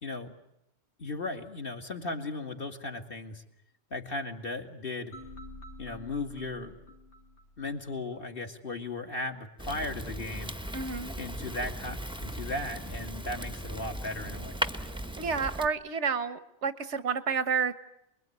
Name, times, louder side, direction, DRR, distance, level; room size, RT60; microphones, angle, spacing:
voice 1, 0.0-0.3 1.0-3.4 3.9-5.1 5.8-6.8 7.6-10.5 11.2-14.6, left 2 dB, 50° left, 4 dB, 2.5 m, -36 dB
sound 1, 5.1-8.2, left 1 dB, 70° left, 3.0 m, -48 dB
Fire, 9.6-15.7, right 1 dB, 5° right, 0.9 m, -37 dB
voice 2, 10.7-11.1 15.2-17.7, right 5 dB, 80° right, 13 dB, 1.6 m, -30 dB
28.5 x 22.0 x 9.4 m, 0.83 s
omnidirectional pair, 1.2 m